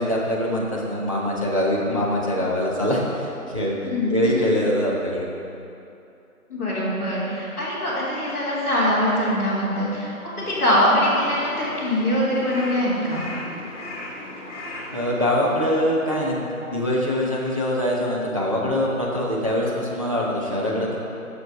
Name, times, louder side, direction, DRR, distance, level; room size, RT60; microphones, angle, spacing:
voice 1, 0.0-3.7 4.1-5.3 14.9-21.0, left 1 dB, 25° right, -4 dB, 0.7 m, -23 dB
voice 2, 3.8-4.5 6.5-10.1 10.4-13.3 19.4-19.5, equal, 10° left, -13 dB, 1.4 m, -23 dB
Crow, 10.4-15.9, left 1 dB, 55° left, 1.3 m, -37 dB
8.6 x 6.2 x 5.1 m, 2.8 s
figure-of-eight pair, 155°, 44 cm